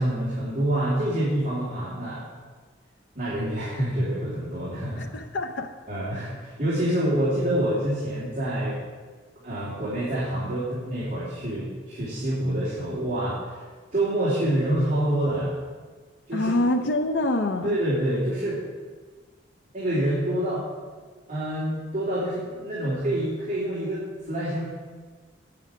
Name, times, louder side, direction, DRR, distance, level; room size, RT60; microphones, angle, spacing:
voice 1, 0.0-2.2 3.1-5.1 5.9-8.8 9.4-13.6 13.9-15.6 16.3-16.5 17.6-18.6 19.7-20.6 21.3-24.7, right 1 dB, 45° right, -10 dB, 3.2 m, -27 dB
voice 2, 5.0-5.8 16.3-17.8, left 1 dB, 75° left, 4 dB, 0.6 m, -25 dB
9.2 x 8.8 x 6.3 m, 1.5 s
head